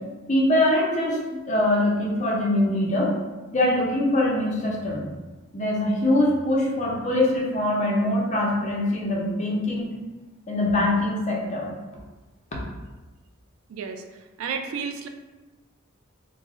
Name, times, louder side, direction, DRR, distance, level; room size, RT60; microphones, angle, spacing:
voice 1, 0.3-3.1 3.5-5.1 5.5-9.9 10.5-11.7, left 1 dB, 35° left, -3 dB, 0.6 m, -23 dB
voice 2, 13.7-14.0 14.4-15.1, right 6 dB, 80° right, 6 dB, 0.3 m, -31 dB
2.3 x 2.0 x 3.6 m, 1.2 s
head